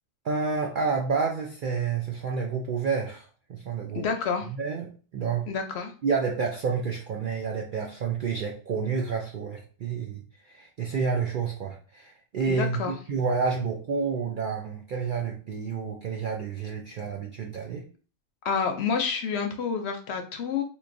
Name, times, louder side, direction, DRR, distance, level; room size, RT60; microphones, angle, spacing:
voice 1, 0.2-4.1 4.5-5.5 6.0-17.9, right 5 dB, 70° right, 2 dB, 0.5 m, -29 dB
voice 2, 3.9-4.5 5.5-5.9 12.5-12.9 18.4-20.6, left 6 dB, 65° left, 5 dB, 0.7 m, -28 dB
3.6 x 2.9 x 2.5 m, 0.38 s
omnidirectional pair, 1.4 m